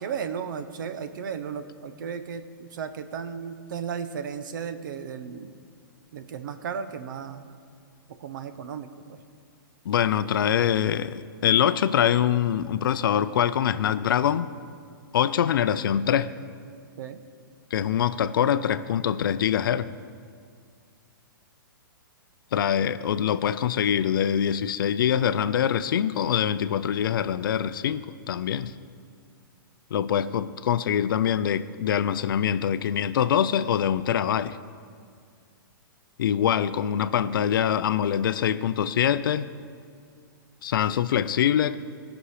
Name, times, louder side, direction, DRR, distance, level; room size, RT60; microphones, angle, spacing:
voice 1, 0.0-5.6 6.1-7.5 8.2-9.2 17.0-17.2, right 7 dB, 60° right, 10 dB, 0.8 m, -35 dB
voice 2, 9.9-14.5 15.1-16.3 17.7-19.9 22.5-28.7 29.9-34.6 36.2-39.5 40.6-41.8, left 9 dB, 65° left, 14 dB, 0.5 m, -24 dB
18.0 x 6.2 x 4.9 m, 2.2 s
hypercardioid pair, 155°, 12 cm